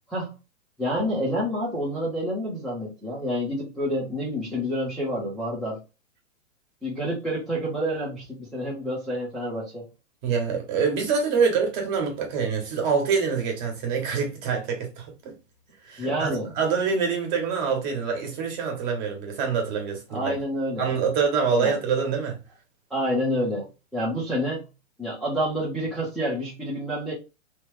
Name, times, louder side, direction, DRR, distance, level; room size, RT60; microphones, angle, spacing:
voice 1, 0.8-5.8 6.8-9.9 16.0-16.5 20.1-20.9 21.6-21.8 22.9-23.7 23.9-24.6 25.0-27.1, equal, ahead, 0.7 m, -28 dB
voice 2, 10.2-15.3 15.8-20.3 20.8-22.4, right 5 dB, 35° right, 1.3 m, -25 dB
3.2 x 2.4 x 3.2 m
hypercardioid pair, 145°, 38 cm